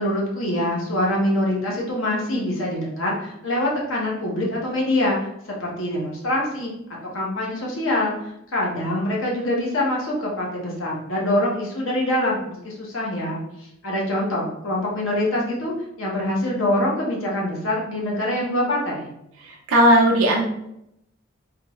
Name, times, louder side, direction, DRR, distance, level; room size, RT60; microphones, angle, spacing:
voice 1, 0.0-5.3 5.6-6.7 7.1-8.1 8.5-19.1, left 1 dB, 70° left, -3 dB, 0.9 m, -24 dB
voice 2, 19.7-20.4, equal, 90° right, 0 dB, 0.6 m, -15 dB
3.4 x 2.3 x 3.0 m, 0.78 s
head